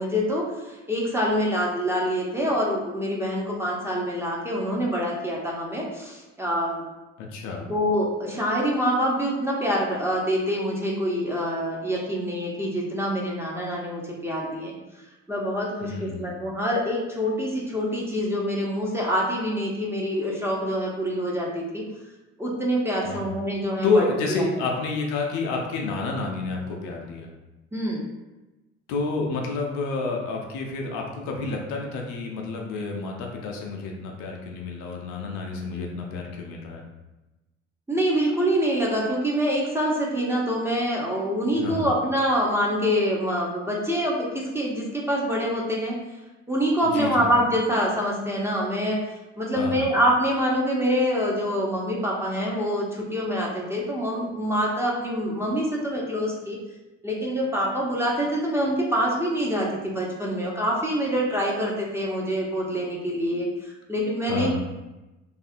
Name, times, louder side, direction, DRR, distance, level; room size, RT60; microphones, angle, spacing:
voice 1, 0.0-6.8 7.7-14.7 15.3-21.8 22.4-24.6 27.7-28.0 37.9-46.0 46.5-49.0 49.4-56.6 57.0-64.5, equal, 5° right, -3 dB, 0.6 m, -25 dB
voice 2, 7.2-7.7 15.8-16.4 23.0-23.2 23.8-27.3 28.9-36.8 41.6-41.8 46.8-47.3 49.5-49.9 64.3-64.5, left 3 dB, 55° left, 0 dB, 0.5 m, -29 dB
2.6 x 2.4 x 2.5 m, 1.1 s
hypercardioid pair, 55°, 36 cm